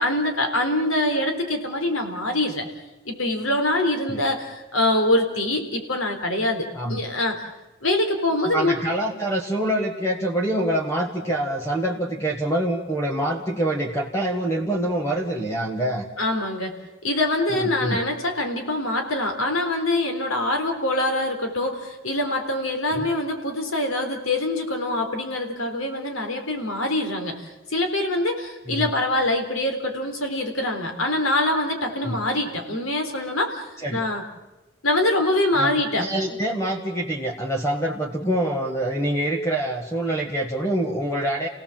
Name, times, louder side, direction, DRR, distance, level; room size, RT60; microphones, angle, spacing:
voice 1, 0.0-2.7 3.1-7.4 7.8-8.8 16.2-16.8 17.0-33.6 33.9-34.2 34.8-36.4, left 1 dB, 85° left, 5 dB, 3.8 m, -24 dB
voice 2, 8.5-16.1 17.5-18.0 22.9-23.1 28.7-28.8 32.0-32.2 33.8-34.0 35.6-41.5, right 1 dB, 15° left, 1 dB, 1.7 m, -25 dB
29.0 x 17.5 x 7.4 m, 1.1 s
head